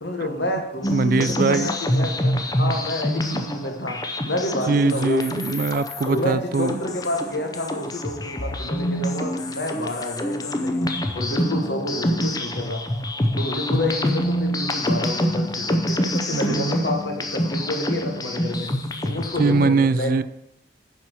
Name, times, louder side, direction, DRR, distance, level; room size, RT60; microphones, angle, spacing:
voice 1, 0.0-5.3 6.0-12.9 13.4-18.8 19.0-20.2, left 1 dB, 75° left, 3 dB, 1.7 m, -29 dB
sound 1, 0.8-19.7, left 1 dB, 20° left, 0.6 m, -26 dB
voice 2, 0.9-1.7 3.3-3.4 4.7-6.8 16.3-16.8 19.4-20.2, right 4 dB, 50° right, 16 dB, 0.3 m, -22 dB
8.9 x 4.4 x 6.2 m, 0.76 s
head